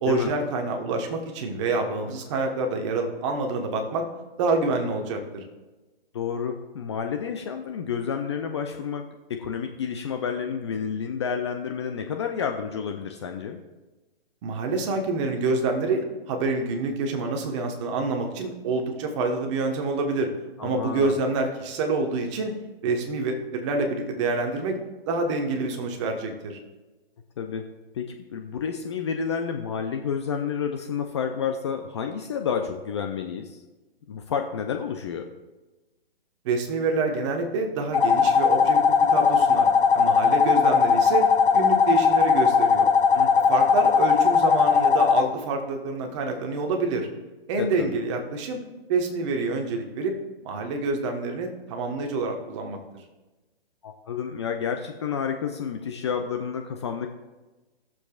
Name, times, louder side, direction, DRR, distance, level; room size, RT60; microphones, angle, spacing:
voice 1, 0.0-4.1 4.4-5.4 14.4-20.3 20.6-22.5 22.8-24.8 25.1-26.6 36.4-39.7 39.9-41.3 41.5-42.9 43.5-47.1 47.5-48.6 48.9-50.2 50.4-52.8, right 3 dB, 30° right, 3 dB, 1.3 m, -27 dB
voice 2, 6.1-9.0 9.3-13.6 20.6-21.2 27.4-27.7 27.9-33.6 34.1-35.3 43.1-43.3 47.6-48.0 53.8-57.1, left 7 dB, 30° left, 5 dB, 0.5 m, -30 dB
sound 1, 37.9-45.2, left 6 dB, 55° left, 1.2 m, -19 dB
19.5 x 7.1 x 2.4 m, 1.2 s
hypercardioid pair, 145°, 31 cm